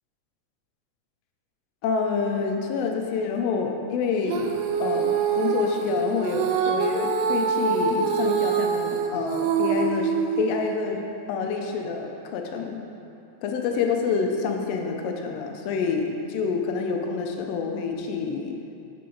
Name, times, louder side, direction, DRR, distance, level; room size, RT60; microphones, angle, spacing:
voice 1, 1.8-4.5 4.8-12.8 13.4-18.6, left 5 dB, 75° left, 3 dB, 1.6 m, -27 dB
Female singing, 4.3-10.8, right 6 dB, 80° right, 1.5 m, -25 dB
6.8 x 6.6 x 3.9 m, 2.7 s
omnidirectional pair, 3.4 m